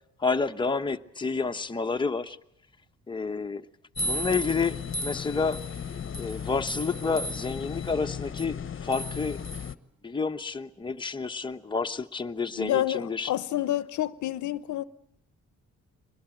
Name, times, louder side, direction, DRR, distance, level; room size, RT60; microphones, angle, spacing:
voice 1, 0.2-2.4 3.1-3.6 4.0-5.6 6.2-9.4 10.0-13.3, left 4 dB, 15° left, 1.1 m, -29 dB
sound 1, 4.0-9.7, left 3 dB, 45° left, 1.2 m, -34 dB
voice 2, 12.6-14.8, left 13 dB, 75° left, 0.9 m, -28 dB
24.0 x 20.5 x 9.1 m
cardioid pair, 90°, 30 cm